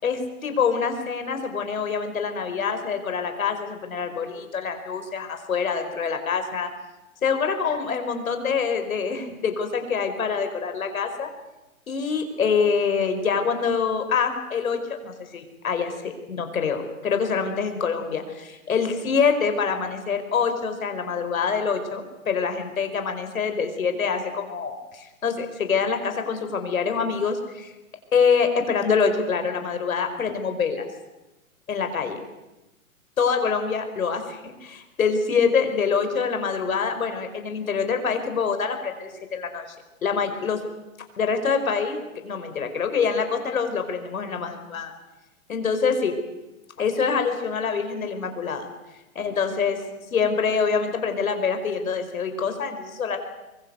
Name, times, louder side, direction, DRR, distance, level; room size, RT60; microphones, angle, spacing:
voice 1, 0.0-6.7 7.2-11.3 11.9-27.7 28.1-30.9 31.7-32.2 33.2-39.7 40.0-40.6 41.2-44.9 45.5-46.1 46.8-48.7 49.1-49.9 50.1-53.2, left 5 dB, 70° left, 7 dB, 5.0 m, -25 dB
23.5 x 22.5 x 8.2 m, 1.0 s
hypercardioid pair, 165°, 42 cm